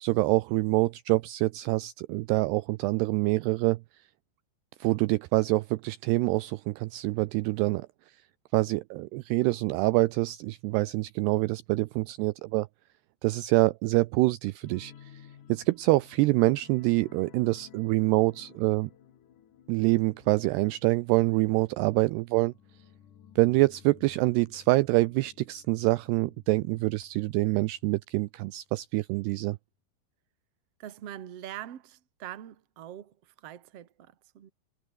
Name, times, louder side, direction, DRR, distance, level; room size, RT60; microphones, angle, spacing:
voice 1, 0.0-3.8 4.8-7.9 8.5-12.7 13.2-18.9 19.7-22.5 23.4-29.6, right 20 dB, 85° right, 2.4 m, -26 dB
sound 1, 14.6-27.9 28.2-28.4 28.8-28.9, left 9 dB, 55° left, 2.9 m, -56 dB
voice 2, 30.8-34.5, right 11 dB, 50° right, 2.0 m, -43 dB
omnidirectional pair, 5.2 m